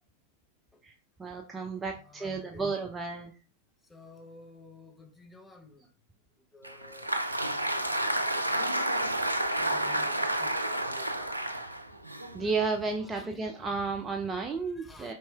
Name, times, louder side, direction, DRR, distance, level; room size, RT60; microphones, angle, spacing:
voice 1, 1.2-3.3 12.3-15.1, right 4 dB, 15° right, 0.4 m, -32 dB
voice 2, 1.8-2.7 3.9-5.9 6.5-7.1 7.7-11.3 12.4-12.6 13.0-13.4 14.7-15.1, left 2 dB, 5° left, 0.7 m, -52 dB
Applause, 6.6-13.0, right 1 dB, 85° right, 0.3 m, -30 dB
4.2 x 3.1 x 2.3 m
figure-of-eight pair, 90°, 0 cm